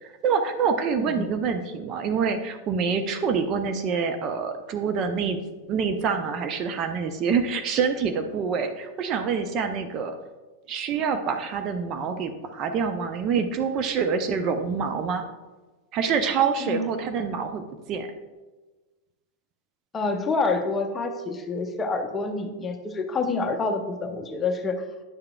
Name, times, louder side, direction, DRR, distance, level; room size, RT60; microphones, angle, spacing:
voice 1, 0.0-5.4 5.7-10.1 10.7-15.2 15.9-17.6 17.9-18.1, right 6 dB, 35° right, 7 dB, 0.5 m, -26 dB
voice 2, 1.0-1.4 16.6-16.8 19.9-24.8, left 3 dB, 20° left, 5 dB, 0.7 m, -27 dB
9.5 x 6.6 x 2.3 m, 1.2 s
figure-of-eight pair, 90°, 0 cm